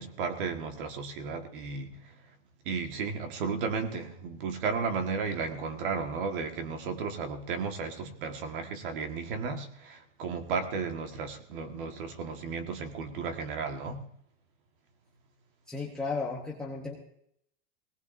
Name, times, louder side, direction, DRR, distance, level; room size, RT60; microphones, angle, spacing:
voice 1, 0.0-1.9 2.6-14.0, right 5 dB, 45° right, 6 dB, 1.7 m, -34 dB
voice 2, 15.7-16.9, left 4 dB, ahead, -4 dB, 0.9 m, -34 dB
19.5 x 18.0 x 2.7 m, 0.72 s
supercardioid pair, 175°, 35 cm